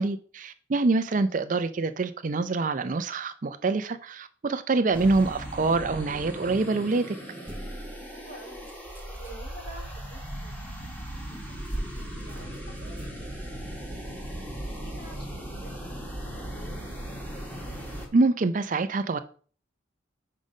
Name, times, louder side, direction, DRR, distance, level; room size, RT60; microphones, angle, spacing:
voice 1, 0.0-7.2 18.1-19.2, right 3 dB, 40° right, 0.4 m, -25 dB
sound 1, 4.9-18.1, equal, 10° left, 1.6 m, -38 dB
sound 2, 7.4-9.5 11.0-11.2 11.5-15.1 15.7-15.8, right 1 dB, 10° right, 0.7 m, -42 dB
voice 2, 8.1-8.7 9.1-10.7 11.1-11.5 12.0-13.3 13.6-13.7 14.4-17.2, right 1 dB, 50° left, 2.7 m, -49 dB
5.5 x 5.0 x 5.3 m
head